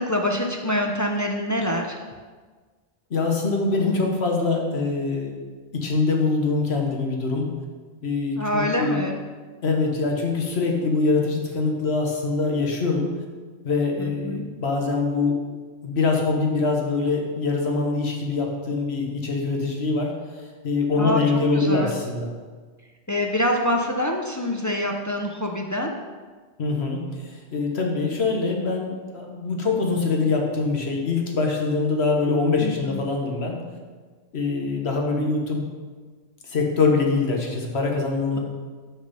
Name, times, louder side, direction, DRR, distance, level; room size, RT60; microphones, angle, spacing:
voice 1, 0.0-2.0 8.4-9.2 14.0-14.4 20.9-21.2 21.5-21.9 23.1-25.9 32.6-33.0, left 1 dB, 25° left, 2 dB, 0.4 m, -25 dB
voice 2, 3.1-5.3 5.7-7.5 8.0-9.0 9.6-13.1 13.6-15.4 15.8-20.1 20.6-22.3 26.6-27.0 27.5-33.6 34.3-35.6 36.5-38.4, left 3 dB, 65° left, 1 dB, 1.4 m, -23 dB
6.1 x 5.8 x 5.4 m, 1.4 s
omnidirectional pair, 1.2 m